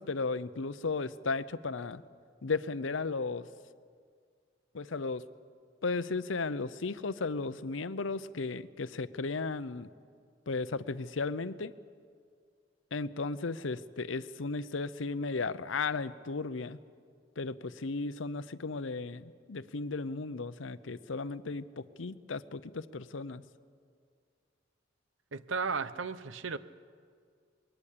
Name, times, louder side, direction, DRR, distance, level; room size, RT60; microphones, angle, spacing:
voice 1, 0.0-2.0 2.4-3.5 4.7-5.2 5.8-9.9 10.5-11.7 12.9-16.8 17.4-23.4, left 4 dB, 85° left, 0.7 m, -35 dB
voice 2, 25.3-26.6, right 5 dB, 85° right, 0.8 m, -34 dB
21.5 x 18.5 x 8.5 m
head